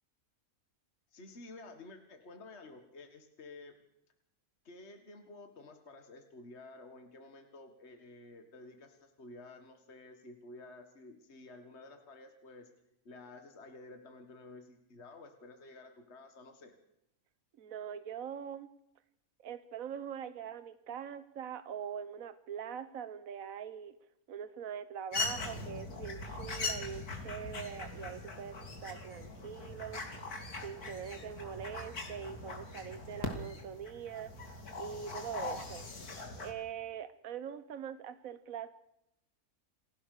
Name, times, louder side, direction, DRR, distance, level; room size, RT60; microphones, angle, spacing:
voice 1, 1.1-3.7 4.6-12.7 13.1-16.7, left 2 dB, 45° left, 6 dB, 2.0 m, -52 dB
voice 2, 17.6-18.7 19.4-23.9 24.3-28.5 28.8-30.4 30.6-34.3 34.8-35.9 36.4-38.7, right 8 dB, 65° right, 12 dB, 1.4 m, -43 dB
sound 1, 25.1-36.5, left 3 dB, 90° left, 3.1 m, -41 dB
28.5 x 16.0 x 6.7 m, 0.81 s
omnidirectional pair, 1.6 m